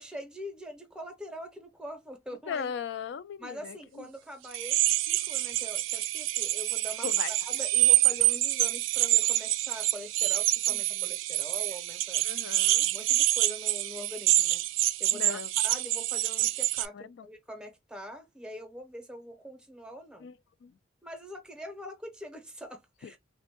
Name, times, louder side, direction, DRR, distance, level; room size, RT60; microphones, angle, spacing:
voice 1, 0.0-2.7 3.4-7.1 7.5-12.2 12.8-14.6 15.0-20.3 21.0-23.2, equal, 5° right, 0.6 m, -43 dB
voice 2, 2.5-4.1 7.0-7.5 10.7-11.1 12.2-12.9 15.1-15.5 16.9-17.3 20.2-20.8 23.0-23.1, left 7 dB, 65° left, 0.3 m, -39 dB
sound 1, 4.5-16.9, right 15 dB, 85° right, 0.3 m, -26 dB
3.5 x 2.1 x 2.8 m
head